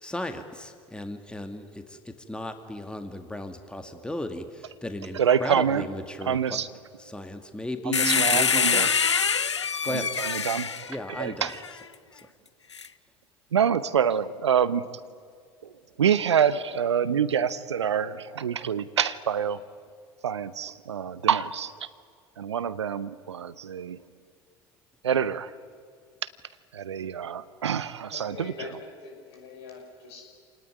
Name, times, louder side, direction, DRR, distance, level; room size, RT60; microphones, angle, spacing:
voice 1, 0.0-2.0 2.3-6.7 7.0-9.0 9.8-10.1 10.9-11.8, left 1 dB, 5° left, 6 dB, 2.2 m, -35 dB
voice 2, 5.1-5.9 6.2-6.7 7.8-8.9 9.9-11.6 13.5-14.9 15.6-15.7 16.0-19.6 20.2-21.9 22.4-24.0 25.0-25.5 26.7-28.5, right 8 dB, 80° right, 16 dB, 0.8 m, -26 dB
sound 1, 7.9-11.7 12.7-12.9, left 6 dB, 85° left, 0.6 m, -25 dB
voice 3, 28.1-30.2, left 4 dB, 70° left, 2 dB, 5.8 m, -42 dB
28.0 x 18.5 x 9.7 m, 2.1 s
figure-of-eight pair, 65°, 14 cm